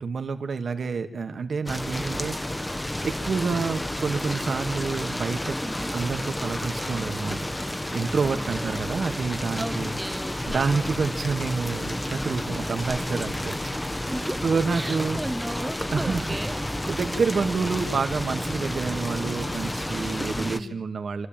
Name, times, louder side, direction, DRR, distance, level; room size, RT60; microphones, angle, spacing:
voice 1, 0.0-2.6 3.0-5.6 5.9-10.0 10.5-13.5 13.9-14.1 14.4-15.2 15.9-16.3 16.6-21.3, right 4 dB, 65° right, 8 dB, 2.1 m, -28 dB
sound 1, 1.7-20.6, left 1 dB, 15° left, 1.4 m, -31 dB
voice 2, 5.6-5.9 8.2-8.8 9.6-10.7 14.1-16.5 20.3-20.8, right 1 dB, 15° right, 11 dB, 1.7 m, -35 dB
27.0 x 12.5 x 9.1 m, 0.74 s
cardioid pair, 60°, 0 cm